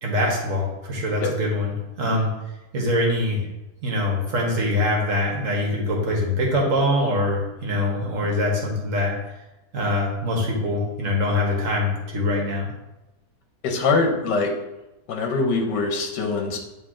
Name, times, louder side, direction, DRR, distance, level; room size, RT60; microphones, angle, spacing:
voice 1, 0.0-2.3 2.7-3.4 3.8-9.1 9.7-12.7, left 1 dB, 50° right, -1 dB, 1.7 m, -23 dB
voice 2, 13.6-14.5 15.1-16.6, left 3 dB, 80° left, 3 dB, 1.5 m, -23 dB
8.0 x 3.6 x 3.7 m, 0.99 s
omnidirectional pair, 1.8 m